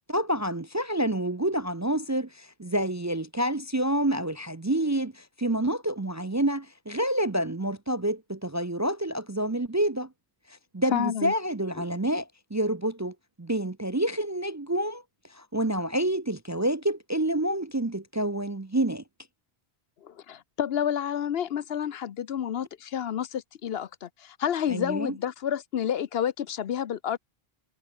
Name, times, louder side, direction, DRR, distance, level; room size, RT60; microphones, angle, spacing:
voice 1, 0.1-10.1 10.5-15.0 15.3-19.0 24.7-25.1, right 1 dB, 20° right, 0.5 m, -28 dB
voice 2, 10.9-11.3 20.0-27.2, left 9 dB, 70° left, 0.9 m, -29 dB
omnidirectional pair, 1.1 m